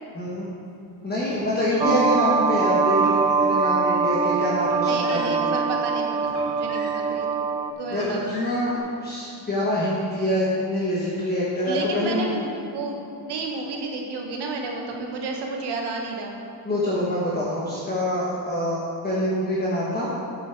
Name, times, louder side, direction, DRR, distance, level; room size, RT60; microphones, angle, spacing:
voice 1, 0.2-0.5 1.0-5.5 7.9-8.7 9.0-12.3 16.6-20.1, left 1 dB, 25° left, -6 dB, 1.2 m, -25 dB
Car, 1.2-2.2 2.9-3.9 4.5-5.5 6.2-7.3 7.9-8.8, left 1 dB, 75° left, 2.0 m, -43 dB
sound 1, 1.8-7.7, right 5 dB, 15° right, 0.3 m, -23 dB
voice 2, 4.8-7.5 7.8-8.3 11.6-16.4, right 3 dB, 75° right, 1 dB, 1.5 m, -31 dB
8.7 x 7.2 x 4.6 m, 2.7 s
cardioid pair, 150°, 41 cm